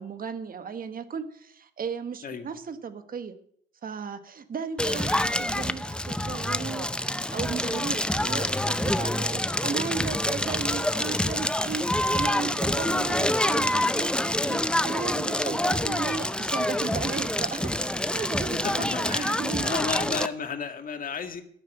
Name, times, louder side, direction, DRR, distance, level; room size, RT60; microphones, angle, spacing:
voice 1, 0.0-3.4 3.8-20.1, right 6 dB, 45° right, 10 dB, 1.4 m, -35 dB
Crackle, 4.8-20.3, left 1 dB, 5° left, 0.6 m, -27 dB
voice 2, 12.8-13.2 18.6-21.4, left 6 dB, 45° left, 7 dB, 1.8 m, -34 dB
12.5 x 6.5 x 9.0 m, 0.66 s
cardioid pair, 90°, 20 cm